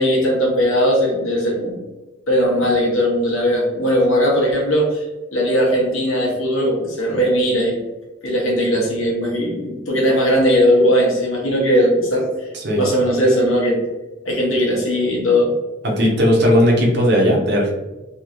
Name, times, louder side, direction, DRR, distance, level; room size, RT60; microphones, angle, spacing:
voice 1, 0.0-1.8 2.3-5.0 5.3-7.8 8.2-12.3 12.8-13.8 14.2-15.5, equal, 90° left, -2 dB, 1.1 m, -18 dB
voice 2, 15.8-17.7, equal, 55° right, -2 dB, 0.8 m, -16 dB
3.0 x 2.8 x 2.5 m, 1.1 s
head